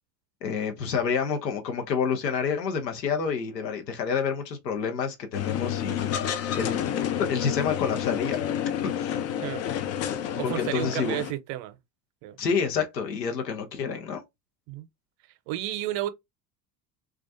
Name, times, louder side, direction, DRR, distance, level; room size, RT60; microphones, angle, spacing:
voice 1, 0.4-8.4 8.8-9.2 10.3-11.2 12.4-14.2, left 6 dB, 85° left, 0.8 m, -29 dB
sound 1, 5.3-11.3, left 10 dB, 35° left, 0.4 m, -29 dB
voice 2, 10.4-11.8 12.2-12.4 14.7-14.9 15.5-16.1, right 14 dB, 55° right, 0.6 m, -31 dB
2.3 x 2.3 x 2.5 m
hypercardioid pair, 70°, 48 cm